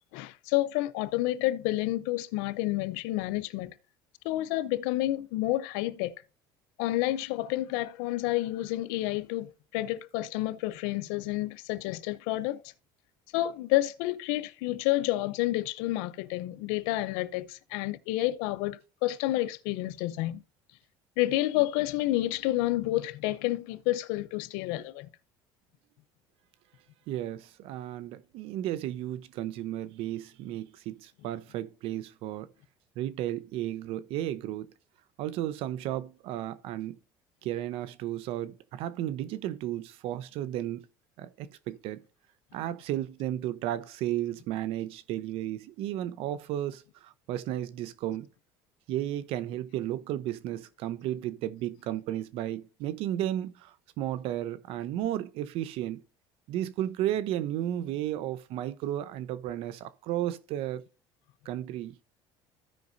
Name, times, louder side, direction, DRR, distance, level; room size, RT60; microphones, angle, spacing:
voice 1, 0.1-3.7 4.2-6.1 6.8-12.6 13.3-20.4 21.2-25.1, left 16 dB, 85° left, 0.6 m, -29 dB
voice 2, 27.1-32.5 33.0-34.7 35.2-37.0 37.4-40.8 41.2-42.0 42.5-48.3 48.9-56.0 56.5-60.8 61.4-61.9, right 12 dB, 70° right, 0.7 m, -33 dB
15.0 x 5.3 x 2.6 m
cardioid pair, 115°, 10 cm